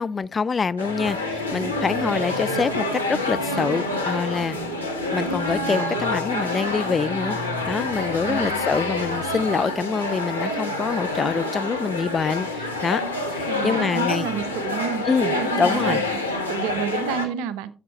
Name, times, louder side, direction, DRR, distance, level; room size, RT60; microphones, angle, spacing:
voice 1, 0.0-4.6 5.1-7.4 7.7-13.0 13.3-14.3 15.1-16.0, left 5 dB, 30° left, 0.3 m, -25 dB
sound 1, 0.8-17.3, left 2 dB, 90° left, 1.0 m, -27 dB
sound 2, 1.1-10.9, left 1 dB, 5° right, 2.7 m, -40 dB
voice 2, 8.3-8.6 13.5-17.7, right 8 dB, 65° right, 0.6 m, -30 dB
12.5 x 7.3 x 3.1 m
figure-of-eight pair, 50°, 0 cm